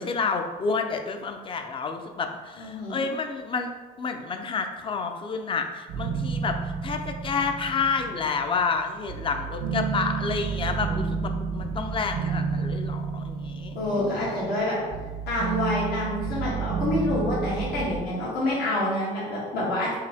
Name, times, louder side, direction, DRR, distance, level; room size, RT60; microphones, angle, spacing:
voice 1, 0.0-3.7 4.0-14.4, left 5 dB, 30° left, 6 dB, 0.5 m, -29 dB
voice 2, 2.6-3.1 13.7-14.8 15.3-19.9, left 1 dB, 70° left, -7 dB, 1.5 m, -27 dB
sound 1, 5.9-18.0, right 5 dB, 75° right, 0.6 m, -31 dB
4.7 x 2.7 x 3.5 m, 1.3 s
cardioid pair, 110°, 17 cm